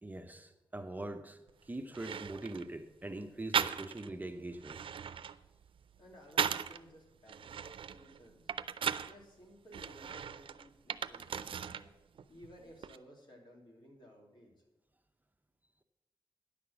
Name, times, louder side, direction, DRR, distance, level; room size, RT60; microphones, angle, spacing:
voice 1, 0.0-4.8, right 2 dB, 20° right, 7 dB, 0.6 m, -43 dB
sound 1, 1.5-1.6 1.9-2.7 3.5-4.2 4.5-6.8 7.3-9.1 9.7-11.9 12.2-13.0, right 8 dB, 85° right, 0.4 m, -37 dB
voice 2, 6.0-8.5 9.0-11.9 12.3-14.5, equal, 60° left, -1 dB, 2.9 m, -57 dB
10.0 x 6.5 x 7.1 m, 1.0 s
wide cardioid pair, 100°, 9 cm